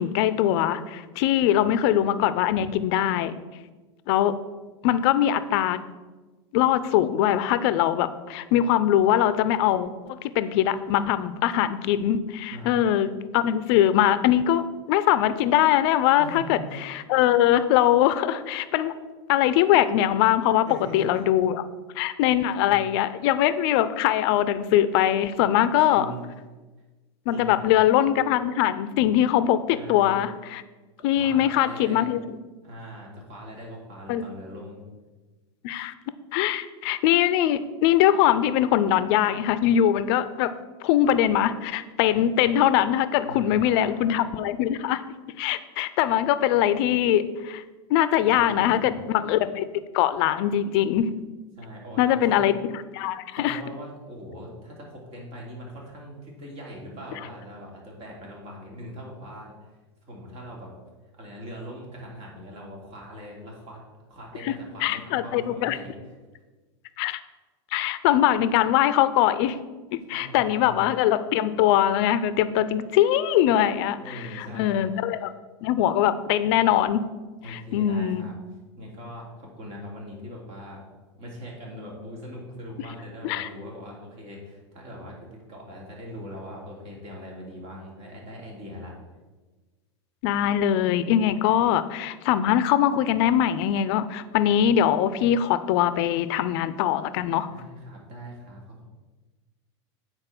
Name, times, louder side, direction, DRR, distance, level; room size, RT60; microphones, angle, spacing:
voice 1, 0.0-3.3 4.1-4.3 4.8-5.8 6.5-16.6 17.1-18.9 19.3-20.7 20.9-21.6 22.0-26.1 27.3-30.6 31.0-32.2 34.1-34.2 35.6-35.9 36.3-40.5 40.8-45.0 45.4-47.6 47.9-49.7 49.9-51.0 52.0-53.6 64.5-64.6 64.8-65.8 67.0-67.2 67.7-69.6 69.9-75.3 75.6-77.0 77.5-78.3 83.2-83.5 90.2-97.5, left 11 dB, 60° left, 13 dB, 0.6 m, -22 dB
voice 2, 16.1-16.8 20.6-21.2 22.6-22.8 25.8-26.2 27.3-27.7 29.7-30.2 31.0-32.1 32.6-34.8 43.3-43.9 48.3-49.0 51.6-52.4 53.3-59.7 60.1-60.7 61.2-63.8 64.1-66.1 70.1-70.8 74.0-74.8 75.2-75.3 77.4-78.3 78.8-80.8 81.1-88.9 97.5-98.8, equal, 45° right, -2 dB, 3.0 m, -41 dB
8.8 x 4.4 x 6.0 m, 1.2 s
hypercardioid pair, 105°, 15 cm